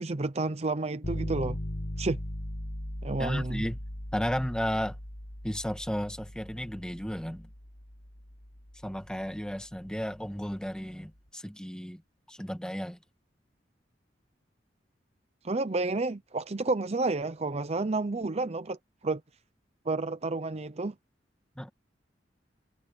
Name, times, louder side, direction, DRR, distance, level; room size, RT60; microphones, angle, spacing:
voice 1, 0.0-1.6 2.0-2.2 3.0-3.7 15.4-18.8 19.0-19.2 19.9-20.9, right 3 dB, 35° right, 0.7 m, -30 dB
sound 1, 1.0-10.9, left 1 dB, 65° left, 2.1 m, -39 dB
voice 2, 3.2-3.8 4.1-5.0 5.4-7.5 8.8-12.0 12.3-13.0 21.6-21.7, equal, 5° left, 1.6 m, -33 dB
head